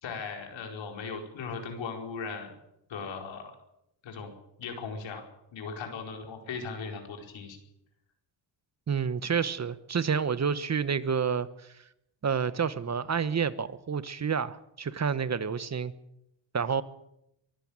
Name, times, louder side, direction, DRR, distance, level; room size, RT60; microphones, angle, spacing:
voice 1, 0.0-2.5 2.9-3.5 4.0-4.3 4.6-5.2 5.5-7.6, left 5 dB, 85° left, 3 dB, 4.9 m, -38 dB
voice 2, 8.9-11.7 12.2-15.9 16.5-16.8, right 6 dB, 35° right, 15 dB, 1.1 m, -29 dB
23.5 x 13.5 x 8.9 m, 0.81 s
cardioid pair, 105°, 44 cm